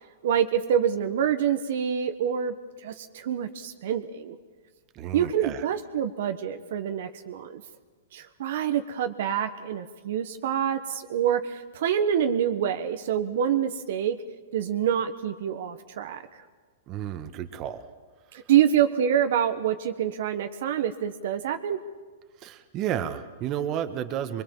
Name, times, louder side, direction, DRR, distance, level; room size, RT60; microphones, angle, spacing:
voice 1, 0.2-2.5 2.8-4.4 5.1-7.6 8.1-14.2 14.5-16.2 18.5-21.8, right 9 dB, 65° right, 7 dB, 1.3 m, -26 dB
voice 2, 4.9-5.7 16.9-17.9 22.4-24.4, right 10 dB, 35° right, 9 dB, 1.6 m, -32 dB
23.5 x 22.0 x 7.5 m, 1.4 s
hypercardioid pair, 125°, 0 cm